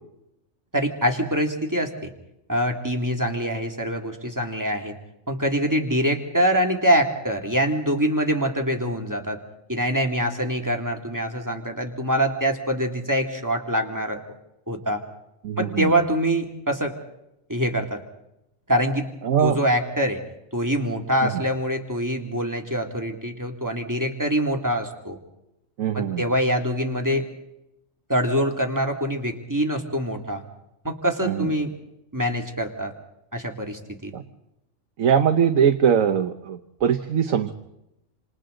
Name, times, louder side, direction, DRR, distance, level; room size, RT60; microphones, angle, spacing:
voice 1, 0.7-2.1 2.5-4.9 5.3-9.4 9.7-14.2 14.7-15.0 15.6-16.9 17.5-18.0 18.7-19.1 19.4-20.2 20.5-25.2 25.9-27.3 28.1-30.4 30.8-31.7 32.1-32.9 33.3-34.1, equal, 15° right, 3 dB, 2.4 m, -24 dB
voice 2, 15.4-15.9 19.2-19.6 25.8-26.2 31.2-31.5 34.1-34.2 35.0-37.5, right 8 dB, 85° right, 7 dB, 1.4 m, -21 dB
28.5 x 27.5 x 3.9 m, 0.87 s
omnidirectional pair, 1.4 m